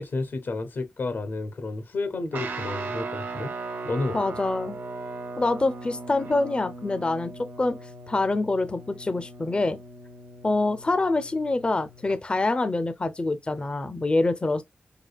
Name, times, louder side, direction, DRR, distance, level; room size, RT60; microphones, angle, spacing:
voice 1, 0.0-3.5 3.8-4.2, left 3 dB, 80° left, 0.7 m, -31 dB
Guitar, 2.3-12.2, right 3 dB, 85° right, 0.6 m, -38 dB
voice 2, 4.1-4.8 5.4-7.8 8.1-9.8 10.4-14.6, left 2 dB, 30° left, 0.4 m, -25 dB
4.8 x 2.3 x 2.2 m
wide cardioid pair, 65°, 3 cm